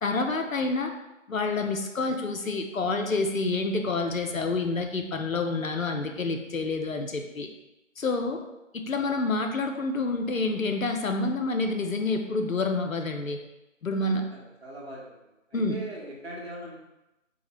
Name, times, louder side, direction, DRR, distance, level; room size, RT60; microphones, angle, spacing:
voice 1, 0.0-0.9 1.3-7.5 8.0-8.4 8.7-13.4 13.8-14.2 15.5-15.8, left 3 dB, 90° left, 5 dB, 0.7 m, -28 dB
voice 2, 14.6-15.0 15.5-16.8, right 1 dB, 55° right, -4 dB, 1.2 m, -39 dB
3.8 x 2.5 x 3.1 m, 0.94 s
figure-of-eight pair, 160°, 39 cm